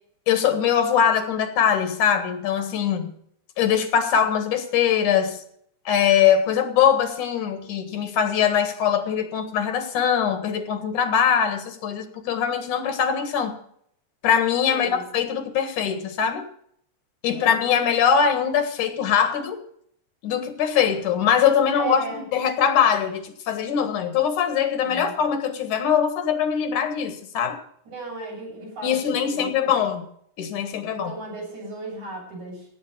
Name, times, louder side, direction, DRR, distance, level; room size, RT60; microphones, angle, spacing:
voice 1, 0.3-3.1 3.6-5.4 5.9-13.5 14.2-16.5 17.2-19.6 20.2-22.0 22.3-27.6 28.8-30.1 30.4-31.1, left 8 dB, 90° left, 8 dB, 3.1 m, -22 dB
voice 2, 14.7-15.0 17.3-17.6 21.8-22.3 24.8-25.1 27.9-29.7 30.8-32.7, right 3 dB, 70° right, -3 dB, 9.3 m, -36 dB
17.0 x 8.1 x 6.7 m, 0.65 s
omnidirectional pair, 3.4 m